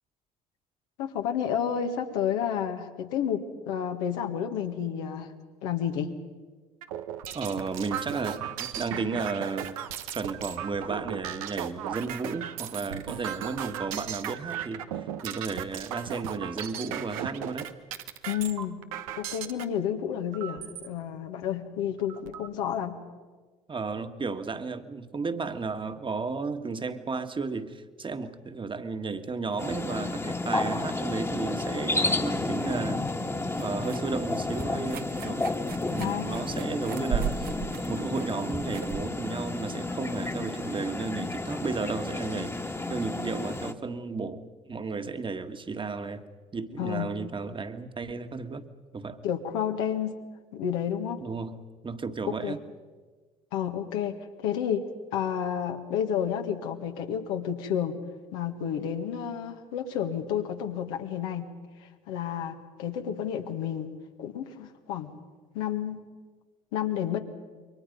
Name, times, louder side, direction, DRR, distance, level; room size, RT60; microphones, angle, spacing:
voice 1, 1.0-5.3 5.6-6.1 18.3-18.8 19.2-23.0 36.0-36.4 46.8-47.1 49.2-50.1 50.5-51.2 52.4-52.5 53.5-58.0 58.3-61.5 61.8-63.9 64.2-65.1 65.5-66.0 66.7-67.2, left 9 dB, 80° left, 4 dB, 1.8 m, -30 dB
sound 1, 6.8-19.6 20.3-20.9 21.4-21.5 21.8-22.5, right 10 dB, 85° right, 1.1 m, -36 dB
voice 2, 7.3-9.8 10.1-17.7 23.7-33.1 33.6-35.5 35.8-37.5 37.9-46.2 46.5-48.7 48.9-49.2 51.2-52.6, right 4 dB, 30° right, 8 dB, 1.7 m, -33 dB
sound 2, 29.6-43.7, left 2 dB, 15° left, 1.7 m, -31 dB
sound 3, 33.4-40.5, right 8 dB, 60° right, 1.2 m, -38 dB
28.0 x 23.0 x 5.4 m, 1.4 s
hypercardioid pair, 65°, 17 cm